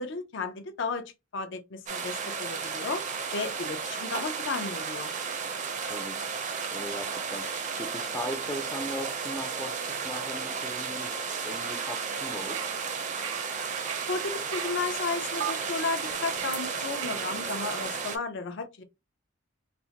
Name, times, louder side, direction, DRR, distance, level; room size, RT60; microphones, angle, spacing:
voice 1, 0.0-3.0 3.3-5.1 14.1-18.8, left 4 dB, 65° left, 0.6 m, -34 dB
sound 1, 1.9-18.2, right 5 dB, 40° right, 0.5 m, -33 dB
voice 2, 5.8-6.2 6.7-7.5 7.8-11.1 11.4-12.6, left 1 dB, 15° left, 0.4 m, -38 dB
sound 2, 12.5-14.9 15.4-15.5 16.1-17.8, right 10 dB, 90° right, 0.4 m, -40 dB
4.1 x 2.1 x 2.8 m
head